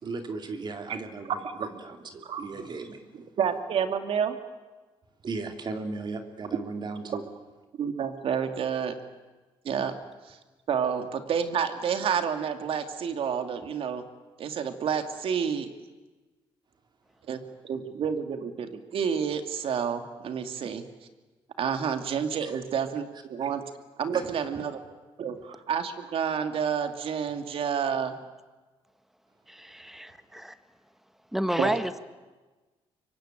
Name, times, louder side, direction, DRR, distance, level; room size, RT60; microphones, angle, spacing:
voice 1, 0.0-3.3 5.2-7.3 22.4-22.5 24.1-24.2, right 3 dB, 50° right, 5 dB, 3.1 m, -36 dB
voice 2, 1.3-1.7 2.2-2.5 3.4-4.4 7.1-7.2 7.8-8.9 9.6-9.9 10.3-10.4 10.7-14.0 14.4-15.7 17.3-20.8 21.6-23.6 24.0-24.8 25.2-28.1 31.6-31.8, right 7 dB, 70° right, 7 dB, 2.5 m, -29 dB
voice 3, 29.5-30.6 31.3-32.0, equal, 5° right, 11 dB, 1.5 m, -30 dB
25.5 x 23.5 x 9.1 m, 1.3 s
cardioid pair, 95°, 10 cm